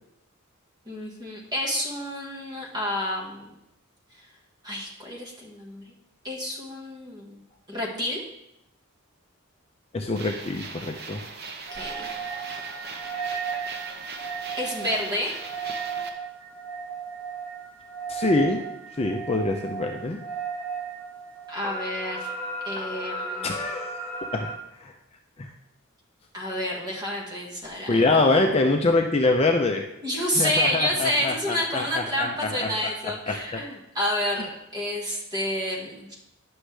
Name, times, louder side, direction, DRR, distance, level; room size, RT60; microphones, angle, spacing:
voice 1, 0.9-3.4 4.6-5.8 6.2-7.4 7.7-8.2 11.7-12.5 14.6-15.3 21.5-22.3 22.6-23.5 26.3-28.0 30.0-36.1, equal, 20° right, -2 dB, 1.4 m, -29 dB
voice 2, 9.9-11.2 18.1-18.6 19.0-20.2 23.4-23.9 24.3-24.5 24.8-24.9 25.4-25.5 27.9-29.8 30.1-32.8 33.3-33.6, left 2 dB, 30° left, 3 dB, 0.5 m, -24 dB
sound 1, 10.2-16.1, right 4 dB, 50° right, 0.8 m, -39 dB
sound 2, 11.7-24.6, right 4 dB, 5° left, 1.2 m, -35 dB
9.8 x 6.2 x 3.3 m, 0.85 s
head